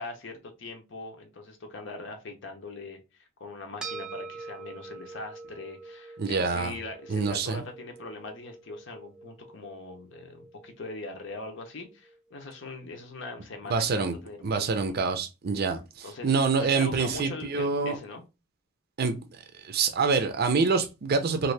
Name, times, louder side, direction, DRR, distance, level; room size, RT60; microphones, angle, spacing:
voice 1, 0.0-15.1 16.0-18.2, left 3 dB, 65° left, 0.7 m, -41 dB
sound 1, 3.8-12.4, right 4 dB, 5° right, 0.6 m, -45 dB
voice 2, 6.2-6.7 7.1-7.6 13.7-14.1 14.4-15.8 16.2-18.0 19.0-19.2 19.6-21.5, right 4 dB, 50° right, 0.5 m, -26 dB
2.7 x 2.5 x 3.2 m
head